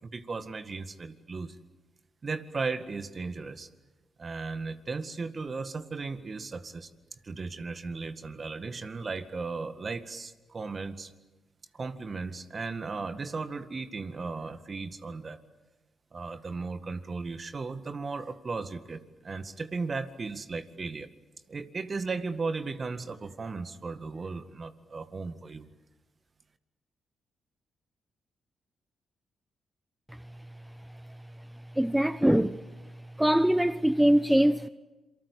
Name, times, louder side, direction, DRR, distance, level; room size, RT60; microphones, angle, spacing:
voice 1, 0.0-1.6 2.2-3.7 4.2-6.9 7.2-11.1 11.7-15.4 16.1-21.1 21.5-25.7, right 4 dB, 45° right, 1.9 m, -36 dB
voice 2, 31.8-32.6 33.2-34.7, right 1 dB, 5° right, 0.8 m, -22 dB
27.0 x 24.0 x 8.5 m
supercardioid pair, 50°, 0 cm